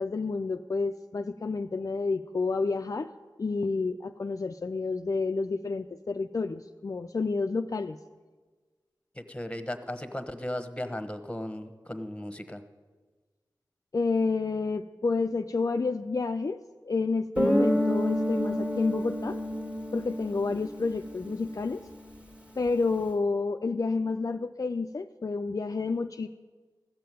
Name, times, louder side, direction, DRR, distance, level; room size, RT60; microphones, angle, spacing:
voice 1, 0.0-3.1 3.4-8.0 13.9-16.6 16.8-19.4 19.9-21.8 22.6-26.3, left 4 dB, 45° left, 5 dB, 0.4 m, -29 dB
voice 2, 9.3-12.6, left 1 dB, 15° left, 9 dB, 1.2 m, -36 dB
Guitar, 17.4-21.9, equal, 15° right, 1.7 m, -29 dB
14.5 x 6.7 x 9.2 m, 1.4 s
cardioid pair, 55°, 8 cm